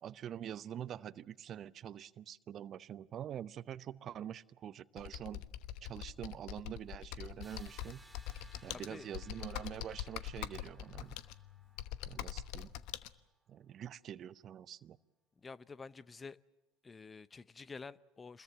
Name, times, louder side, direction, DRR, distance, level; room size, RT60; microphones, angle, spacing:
voice 1, 0.0-5.4 5.8-8.0 8.6-11.2 12.0-12.7 13.5-15.0, right 10 dB, 45° right, 0.8 m, -45 dB
Computer keyboard, 5.0-13.1, left 12 dB, 65° left, 1.0 m, -44 dB
sound 1, 7.4-13.2, right 2 dB, 5° right, 1.9 m, -63 dB
voice 2, 8.7-9.1 15.4-16.4 16.8-18.4, left 4 dB, 25° left, 0.8 m, -49 dB
27.5 x 21.5 x 7.4 m
hypercardioid pair, 75°, 0 cm